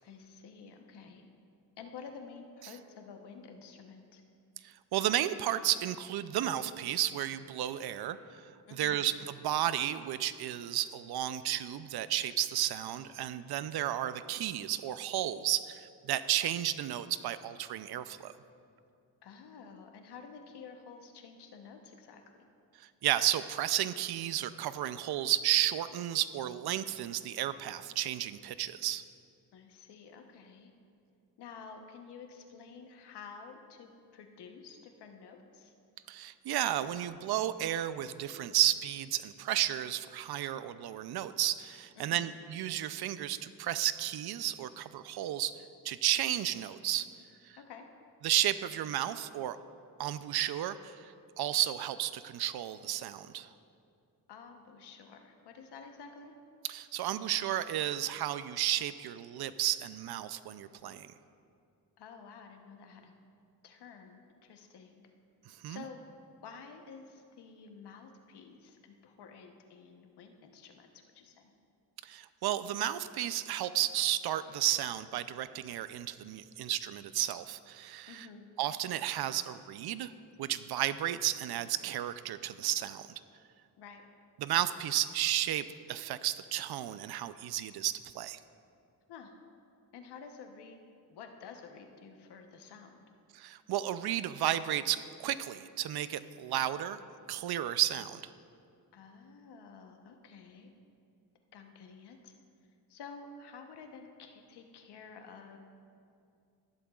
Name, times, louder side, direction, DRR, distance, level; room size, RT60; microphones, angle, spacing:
voice 1, 0.0-1.3 1.8-4.2 8.7-9.1 19.2-22.2 29.5-30.7 31.4-35.7 41.9-42.4 47.6-47.9 54.3-56.3 62.0-63.1 63.6-65.0 65.7-66.0 66.4-71.5 78.1-78.5 83.8-84.0 89.1-89.3 89.9-90.8 91.1-93.0 98.9-100.7 101.5-102.3 102.9-105.6, left 5 dB, 90° left, 4 dB, 1.0 m, -50 dB
voice 2, 4.6-8.2 8.7-18.3 22.8-29.0 36.1-45.5 45.8-47.1 48.2-49.6 50.0-53.5 56.7-61.1 65.5-65.8 72.0-78.3 78.6-80.1 80.4-83.1 84.4-88.4 93.3-97.0 97.3-98.2, right 12 dB, 75° right, 14 dB, 0.5 m, -33 dB
14.0 x 11.5 x 2.4 m, 2.4 s
cardioid pair, 80°, 39 cm